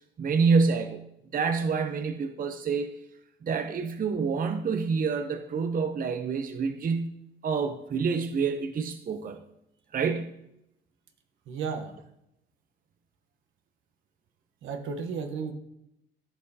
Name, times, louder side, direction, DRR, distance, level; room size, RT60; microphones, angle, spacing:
voice 1, 0.2-1.0 1.3-2.9 3.4-9.4 9.9-10.4, right 5 dB, 45° right, 7 dB, 0.7 m, -27 dB
voice 2, 11.5-11.9 14.6-15.5, right 5 dB, 80° right, 5 dB, 1.1 m, -33 dB
13.5 x 5.4 x 2.8 m, 0.82 s
cardioid pair, 90°, 20 cm